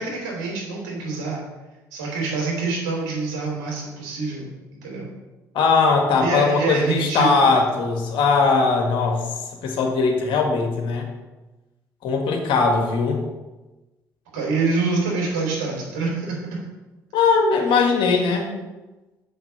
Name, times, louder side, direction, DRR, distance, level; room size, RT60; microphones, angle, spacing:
voice 1, 0.0-1.4 1.9-4.4 4.8-5.0 6.2-7.6 14.3-16.6, right 4 dB, 70° right, -3 dB, 3.4 m, -26 dB
voice 2, 5.5-9.3 9.6-11.1 12.0-13.2 17.1-18.5, left 4 dB, 60° left, 2 dB, 1.8 m, -20 dB
6.8 x 5.9 x 6.9 m, 1.1 s
figure-of-eight pair, 50°, 10 cm